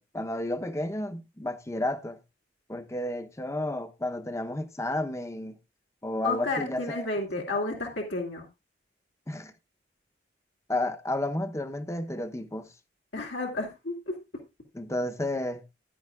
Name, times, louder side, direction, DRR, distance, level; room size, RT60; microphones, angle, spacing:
voice 1, 0.0-2.2 2.7-5.6 6.0-7.0 9.3-9.5 10.7-12.7 14.7-15.6, left 1 dB, 15° left, 0.7 m, -32 dB
voice 2, 6.2-8.5 13.1-14.2, left 3 dB, 80° left, 2.3 m, -31 dB
15.0 x 10.5 x 2.4 m
head